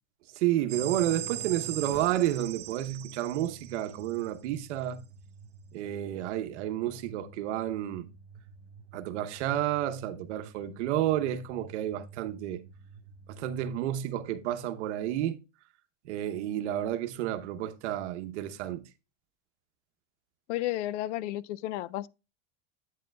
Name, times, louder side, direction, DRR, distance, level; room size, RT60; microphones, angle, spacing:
voice 1, 0.3-5.0 5.7-8.1 8.9-12.6 13.3-15.4 16.0-18.8, right 12 dB, 75° right, 0.9 m, -31 dB
sound 1, 0.7-4.4, right 11 dB, 30° right, 1.6 m, -39 dB
sound 2, 3.3-13.8, right 4 dB, 60° right, 1.7 m, -52 dB
voice 2, 20.5-22.1, left 15 dB, 80° left, 0.5 m, -32 dB
8.4 x 7.7 x 2.2 m
supercardioid pair, 165°, 35 cm